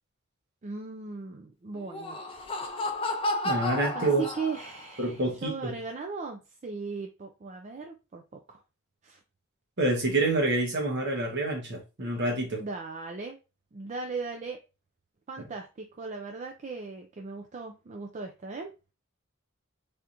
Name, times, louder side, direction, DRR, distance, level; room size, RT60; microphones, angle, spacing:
voice 1, 0.6-2.2 3.9-8.6 9.0-9.2 12.6-13.4 13.7-14.6 15.3-18.7, right 4 dB, 35° right, 0.4 m, -38 dB
Laughter, 1.8-4.9, left 2 dB, 25° left, 0.5 m, -32 dB
voice 2, 3.4-4.3 5.0-5.8 9.8-12.6, right 2 dB, 55° right, 1.1 m, -27 dB
3.4 x 2.9 x 2.5 m
head